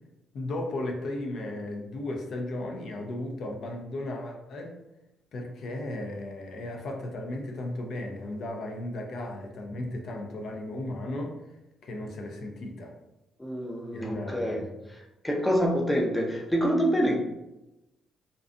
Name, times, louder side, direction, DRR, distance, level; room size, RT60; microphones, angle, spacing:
voice 1, 0.3-4.7 5.3-11.3 11.8-12.9 13.9-14.7, left 1 dB, 65° left, 1 dB, 0.5 m, -35 dB
voice 2, 13.4-14.6 15.2-17.2, equal, 10° left, 0 dB, 0.5 m, -26 dB
2.6 x 2.2 x 2.5 m, 0.96 s
cardioid pair, 90°, 0 cm